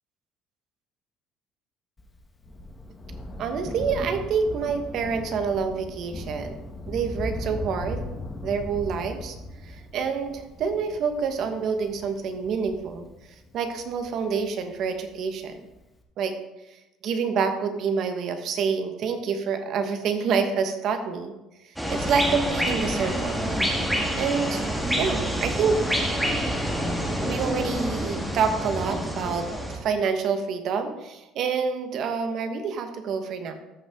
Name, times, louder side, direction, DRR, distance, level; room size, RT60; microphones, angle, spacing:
Thunder, 2.0-14.8 15.7-15.8, left 1 dB, 15° left, 1.2 m, -38 dB
voice 1, 3.4-6.6 6.9-8.0 8.4-9.3 9.6-13.1 13.5-15.6 16.2-16.3 17.0-21.3 21.6-23.4 24.2-24.6 25.0-25.8 27.2-33.5, right 5 dB, 55° right, 7 dB, 1.2 m, -27 dB
sound 1, 21.8-29.8, equal, ahead, 1.6 m, -27 dB
13.5 x 5.6 x 3.7 m, 0.98 s
cardioid pair, 135°, 0 cm